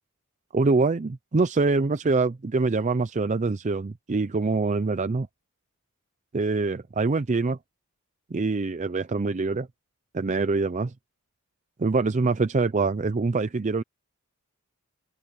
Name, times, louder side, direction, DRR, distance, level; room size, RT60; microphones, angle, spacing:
voice 1, 0.5-5.3 6.3-7.6 8.3-9.7 10.1-10.9 11.8-13.8, right 3 dB, 30° right, 0.5 m, -24 dB
open air
head